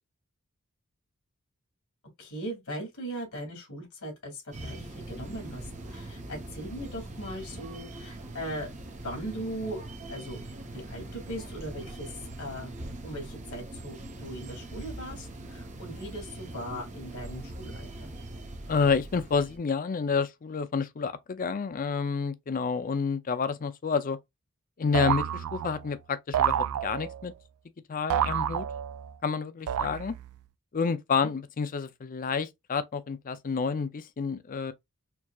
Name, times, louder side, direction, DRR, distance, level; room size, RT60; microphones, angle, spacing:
voice 1, 2.2-8.7 9.0-9.8 10.1-10.4 10.7-12.1 12.4-12.7 13.0-18.1 31.2-31.3, right 1 dB, 70° left, 2.3 m, -39 dB
sound 1, 4.5-19.6, right 1 dB, 35° right, 0.7 m, -42 dB
voice 2, 18.7-24.2 24.8-27.3 27.9-28.7 29.2-30.1 30.7-34.7, left 5 dB, 40° left, 0.4 m, -29 dB
sound 2, 24.9-25.9 26.3-27.3 28.1-29.1 29.7-30.4, right 9 dB, 75° right, 0.3 m, -29 dB
4.5 x 2.8 x 2.3 m
head